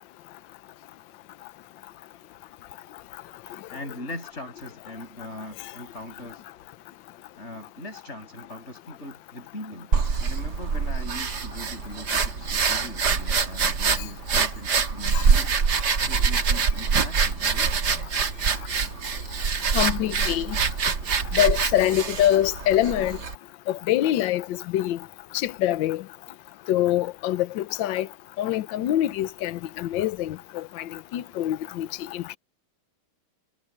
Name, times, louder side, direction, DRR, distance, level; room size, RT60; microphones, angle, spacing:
voice 1, 3.7-6.4 7.3-17.9, left 1 dB, 30° left, 7.1 m, -40 dB
sound 1, 9.9-23.4, right 5 dB, 55° right, 2.2 m, -25 dB
voice 2, 19.7-20.6 21.3-23.2 23.7-25.0 25.3-26.0 26.7-28.1 28.4-32.4, left 12 dB, 70° left, 1.4 m, -25 dB
omnidirectional pair, 2.2 m